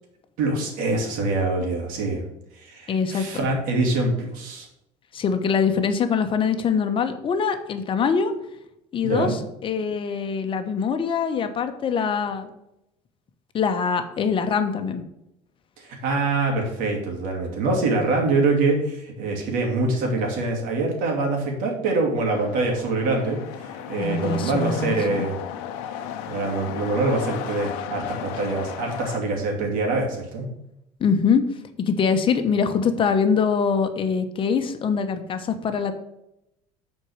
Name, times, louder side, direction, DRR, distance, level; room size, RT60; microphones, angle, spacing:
voice 1, 0.4-2.2 2.5-4.7 9.0-9.3 15.8-25.4 26.3-30.5, right 3 dB, 70° right, 0 dB, 2.6 m, -24 dB
voice 2, 2.9-3.2 5.1-8.3 8.9-12.6 13.5-15.0 24.0-25.3 31.0-31.4 31.8-35.9, left 6 dB, 35° left, 7 dB, 1.0 m, -23 dB
sound 1, 22.3-29.2, left 9 dB, 85° left, 0.8 m, -35 dB
6.4 x 4.6 x 6.5 m, 0.84 s
supercardioid pair, 110°, 15 cm